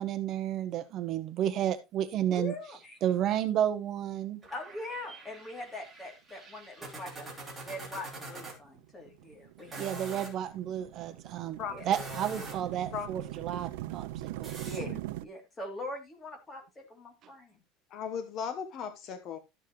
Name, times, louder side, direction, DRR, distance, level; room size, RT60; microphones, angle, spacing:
voice 1, 0.0-2.5 3.0-4.4 9.8-11.6 11.9-14.5, right 10 dB, 35° right, 11 dB, 0.8 m, -31 dB
voice 2, 2.3-3.0 4.5-7.3 7.6-10.0 11.7-11.9 14.6-17.6, left 1 dB, 15° left, 1 dB, 2.9 m, -42 dB
sound 1, 4.4-8.6 9.6-10.3 11.8-12.7 14.4-14.8, right 2 dB, 10° right, 3.0 m, -44 dB
sound 2, 8.3-15.3, right 15 dB, 80° right, 0.5 m, -41 dB
voice 3, 17.9-19.4, left 7 dB, 40° left, 9 dB, 1.1 m, -36 dB
13.0 x 7.3 x 3.1 m, 0.24 s
cardioid pair, 170°, 0 cm